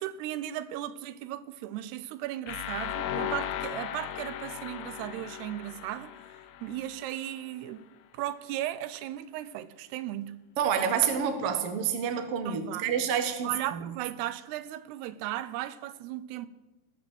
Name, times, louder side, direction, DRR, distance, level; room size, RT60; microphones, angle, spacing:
voice 1, 0.0-6.1 6.6-7.9 8.1-10.4 12.5-12.9 13.4-16.5, right 13 dB, 90° right, 2.8 m, -36 dB
sound 1, 2.5-7.3, left 10 dB, 90° left, 2.7 m, -37 dB
voice 2, 10.6-13.8, right 8 dB, 60° right, 1.5 m, -28 dB
19.0 x 7.0 x 7.9 m
omnidirectional pair, 4.6 m